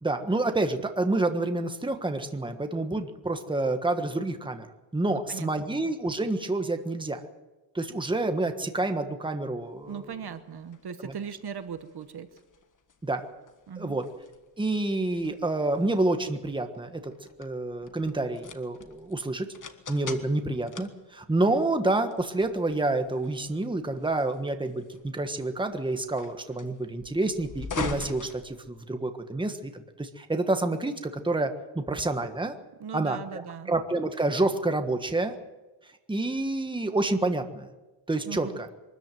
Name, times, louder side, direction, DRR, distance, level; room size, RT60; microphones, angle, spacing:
voice 1, 0.0-4.7 4.9-7.2 7.7-10.0 11.0-11.1 13.0-13.2 13.8-14.0 14.6-17.1 17.4-19.5 19.9-32.5 32.9-33.4 33.7-35.3 36.1-37.7 38.1-38.7, right 2 dB, 10° right, 6 dB, 1.4 m, -28 dB
voice 2, 5.1-5.7 9.9-12.3 13.7-14.0 32.8-33.7 38.2-38.6, right 7 dB, 55° right, 11 dB, 1.2 m, -39 dB
sound 1, 9.8-29.2, left 5 dB, 40° left, 1.5 m, -44 dB
23.5 x 14.0 x 9.2 m, 1.1 s
wide cardioid pair, 170°, 46 cm